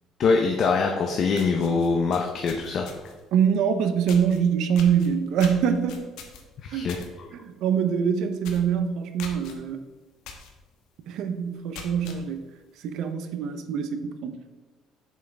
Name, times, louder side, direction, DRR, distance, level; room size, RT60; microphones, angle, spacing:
voice 1, 0.2-2.9 6.6-7.3, left 4 dB, 40° left, 2 dB, 0.6 m, -24 dB
sound 1, 0.9-1.0 1.3-3.2 4.1-4.4 4.7-7.1 7.4-7.7 8.0-8.1 8.4-8.7 9.2-9.5 10.2-10.5 10.9-11.0 11.5-12.2, left 6 dB, 75° left, 1.1 m, -42 dB
voice 2, 3.3-6.0 6.7-7.0 7.3-9.8 11.1-12.4 12.8-14.4, right 7 dB, 60° right, 9 dB, 0.7 m, -24 dB
7.4 x 6.0 x 3.4 m, 1.3 s
cardioid pair, 170°, 0 cm